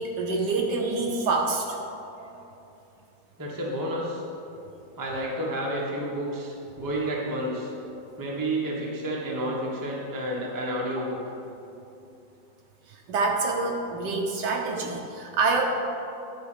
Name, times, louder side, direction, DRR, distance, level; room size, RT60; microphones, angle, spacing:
voice 1, 0.0-1.8 2.2-2.4 12.9-15.6, right 3 dB, 70° right, 1 dB, 1.3 m, -27 dB
voice 2, 3.4-4.2 5.0-7.7 8.2-11.2, right 1 dB, 15° right, -3 dB, 0.7 m, -30 dB
10.5 x 4.4 x 4.9 m, 2.8 s
omnidirectional pair, 2.1 m